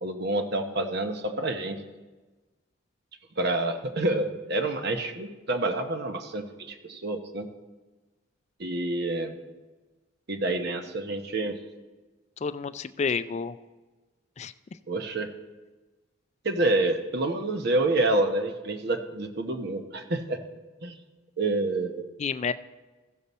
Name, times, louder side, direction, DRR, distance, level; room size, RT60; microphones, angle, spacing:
voice 1, 0.0-1.8 3.4-7.5 8.6-9.3 10.3-11.6 14.9-15.3 16.4-20.4 20.8-21.0 21.4-22.0, right 2 dB, 50° right, 7 dB, 0.8 m, -28 dB
voice 2, 12.4-13.6 14.4-14.5 22.2-22.5, left 5 dB, 35° left, 13 dB, 0.3 m, -29 dB
15.5 x 6.8 x 4.1 m, 1.2 s
head